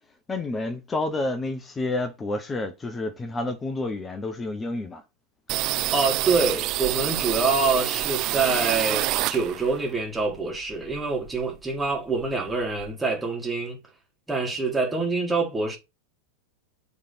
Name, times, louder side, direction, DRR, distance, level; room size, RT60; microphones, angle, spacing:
voice 1, 0.3-5.0, left 2 dB, 15° left, 0.7 m, -29 dB
sound 1, 5.5-9.8 10.2-11.6 11.8-11.9 12.2-12.9, right 16 dB, 40° right, 0.3 m, -27 dB
voice 2, 5.9-13.8 14.3-15.8, right 4 dB, 10° right, 1.7 m, -26 dB
8.1 x 3.4 x 3.9 m
figure-of-eight pair, 90°, 0 cm